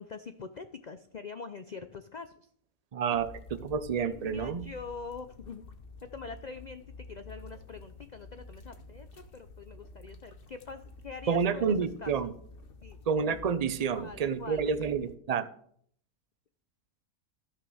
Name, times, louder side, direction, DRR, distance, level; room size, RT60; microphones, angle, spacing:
voice 1, 0.0-2.5 3.1-3.2 4.0-5.6 6.0-6.8 7.1-12.3 12.8-13.1 13.9-15.0, left 4 dB, 70° left, 10 dB, 0.4 m, -44 dB
voice 2, 2.9-4.6 11.3-12.3 13.1-15.5, right 6 dB, 55° right, 12 dB, 0.4 m, -29 dB
sound 1, 3.1-15.2, left 2 dB, 40° left, 1.2 m, -50 dB
12.5 x 6.3 x 6.3 m, 0.64 s
omnidirectional pair, 1.5 m